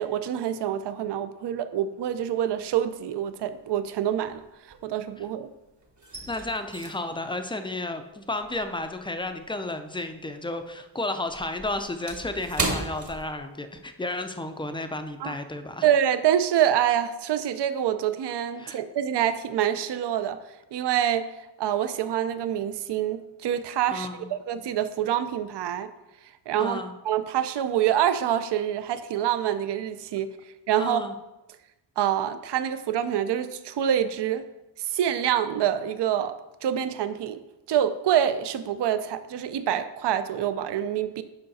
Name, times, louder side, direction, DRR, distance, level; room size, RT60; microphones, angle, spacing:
voice 1, 0.0-4.4 4.8-5.5 15.2-15.3 15.8-20.4 20.7-21.3 21.6-24.1 24.5-25.9 26.5-30.3 30.7-31.0 32.0-34.5 34.8-37.4 37.7-41.2, right 10 dB, 65° right, 11 dB, 0.5 m, -26 dB
sound 1, 2.6-3.1 3.4-5.4 5.6-10.3 10.6-13.9 14.2-14.4 14.9-15.2, right 2 dB, 40° right, 1.3 m, -36 dB
voice 2, 6.3-15.9 18.6-18.8 23.9-24.3 26.6-26.9 30.8-31.1, left 2 dB, 10° left, 7 dB, 0.4 m, -32 dB
7.9 x 5.6 x 4.1 m, 0.98 s
wide cardioid pair, 180°, 45 cm